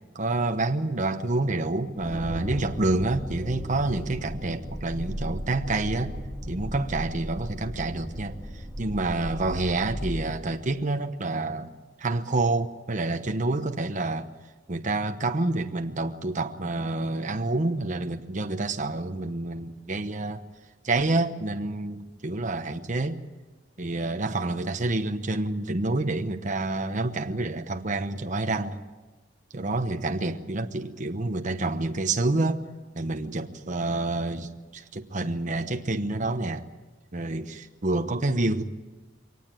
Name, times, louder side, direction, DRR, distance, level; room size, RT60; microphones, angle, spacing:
voice 1, 0.1-6.1 6.5-11.7 12.0-14.3 14.7-20.4 20.8-23.2 23.8-28.8 29.5-32.6 32.9-36.6 37.1-38.6, right 2 dB, 40° right, 6 dB, 1.0 m, -28 dB
sound 1, 1.9-10.2, equal, 5° left, 3.3 m, -36 dB
23.0 x 19.0 x 9.0 m, 1.2 s
head